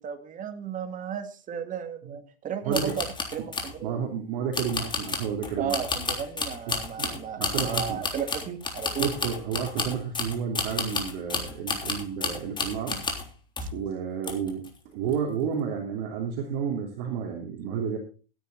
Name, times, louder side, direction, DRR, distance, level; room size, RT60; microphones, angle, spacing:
voice 1, 0.0-3.1 3.3-3.9 5.6-9.1 13.6-13.7, right 8 dB, 25° right, 7 dB, 2.2 m, -34 dB
voice 2, 2.6-3.0 3.4-3.5 3.8-5.8 6.7-8.0 9.0-13.0 13.7-18.0, right 7 dB, 55° right, 0 dB, 3.1 m, -31 dB
sound 1, 2.7-3.7 4.5-13.3 13.6-13.8 14.2-14.7 15.0-15.2, left 4 dB, 15° left, 3.5 m, -31 dB
15.5 x 9.7 x 4.0 m, 0.35 s
hypercardioid pair, 115°, 29 cm